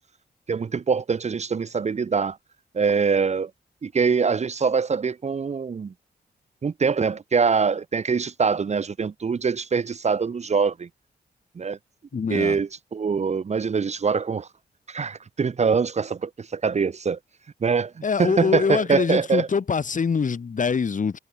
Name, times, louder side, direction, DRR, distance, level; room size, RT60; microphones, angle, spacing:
voice 1, 0.5-2.4 2.7-3.5 3.8-5.9 6.6-10.9 11.6-11.8 12.3-14.5 14.9-17.2 17.6-17.9 18.2-19.5, right 5 dB, 40° right, 0.8 m, -23 dB
voice 2, 12.1-12.6 18.0-21.2, left 5 dB, 50° left, 2.4 m, -24 dB
cardioid pair, 90°, 17 cm